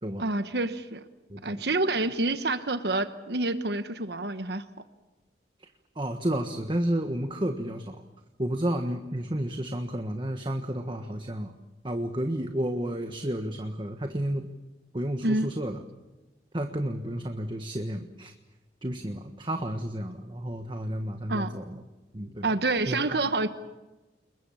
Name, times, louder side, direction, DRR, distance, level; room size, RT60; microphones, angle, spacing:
voice 1, 0.2-1.0 1.4-4.6 15.2-15.5 21.3-21.6 22.4-23.5, right 2 dB, 65° right, 10 dB, 1.2 m, -27 dB
voice 2, 1.3-1.6 6.0-8.0 8.4-11.5 11.8-14.5 14.9-15.8 16.5-18.3 18.8-21.8 22.1-22.5 22.9-23.2, right 1 dB, 30° right, 6 dB, 1.4 m, -31 dB
29.5 x 22.0 x 7.2 m, 1.1 s
head